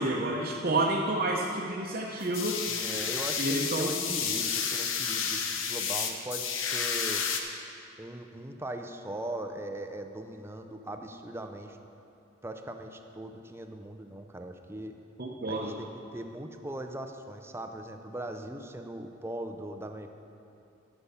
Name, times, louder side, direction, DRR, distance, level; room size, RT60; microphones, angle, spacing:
voice 1, 0.0-2.6 3.4-3.9 15.2-15.7, right 2 dB, 50° right, -2 dB, 0.8 m, -29 dB
sound 1, 2.2-7.4, left 6 dB, 90° left, 0.8 m, -31 dB
voice 2, 2.7-7.2 8.0-11.8 12.4-14.9 15.5-15.9 16.1-20.1, right 1 dB, 15° right, 6 dB, 0.5 m, -39 dB
11.5 x 7.1 x 5.6 m, 2.8 s
head